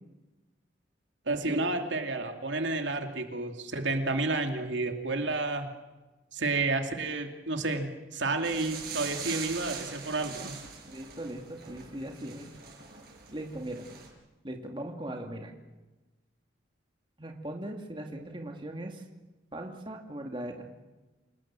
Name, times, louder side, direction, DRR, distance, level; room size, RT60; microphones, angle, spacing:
voice 1, 1.3-5.7 6.3-7.9 8.1-10.5, right 3 dB, 80° right, 5 dB, 2.7 m, -30 dB
sound 1, 8.4-14.1, right 6 dB, 55° right, 7.0 m, -42 dB
voice 2, 10.9-12.5 13.3-13.9 14.4-15.5 17.2-19.0 19.5-20.7, right 1 dB, 25° right, 3 dB, 2.3 m, -39 dB
28.5 x 19.5 x 7.6 m, 1.1 s
head